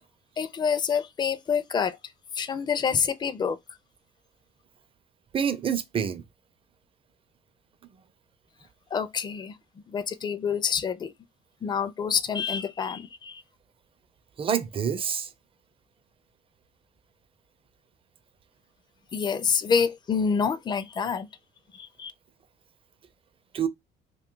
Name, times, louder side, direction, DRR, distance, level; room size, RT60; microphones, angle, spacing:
voice 1, 0.4-2.0 2.3-3.6 8.9-9.6 9.9-11.1 11.6-13.4 19.1-21.3 21.7-22.1, left 6 dB, 25° left, 0.4 m, -27 dB
voice 2, 5.3-6.2 14.4-15.3 23.5-23.7, right 7 dB, 30° right, 0.5 m, -27 dB
2.6 x 2.4 x 3.7 m
cardioid pair, 110°, 17 cm